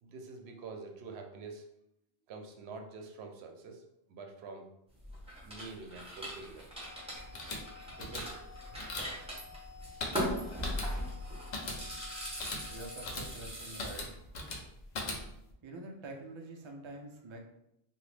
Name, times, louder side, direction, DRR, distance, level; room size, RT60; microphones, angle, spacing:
voice 1, 0.0-1.7 2.3-4.7 5.4-6.7 7.2-7.4 8.0-8.4 9.0-9.1, right 4 dB, 85° right, 4 dB, 0.8 m, -47 dB
sound 1, 5.0-14.0, equal, 5° right, 0.7 m, -40 dB
sound 2, 6.7-13.3, left 5 dB, 70° left, 1.0 m, -54 dB
sound 3, 7.2-15.5, left 2 dB, 50° left, 0.6 m, -41 dB
voice 2, 12.7-14.2 15.6-17.5, right 2 dB, 50° right, 2 dB, 0.3 m, -46 dB
2.9 x 2.4 x 3.2 m, 0.80 s
omnidirectional pair, 1.0 m